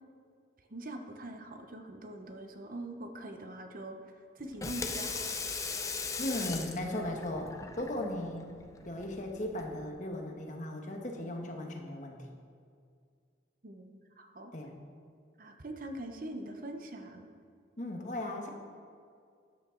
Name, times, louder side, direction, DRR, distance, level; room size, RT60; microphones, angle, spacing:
voice 1, 0.6-5.4 13.6-14.5 15.4-17.3, right 1 dB, 50° right, 5 dB, 0.9 m, -43 dB
Water tap faucet / Sink (filling or washing), 4.4-9.9, left 4 dB, 15° left, 0.6 m, -39 dB
voice 2, 6.2-8.5 8.8-12.3 14.5-14.9 17.8-18.5, left 1 dB, 45° left, 2 dB, 1.3 m, -37 dB
13.0 x 9.5 x 3.8 m, 2.2 s
head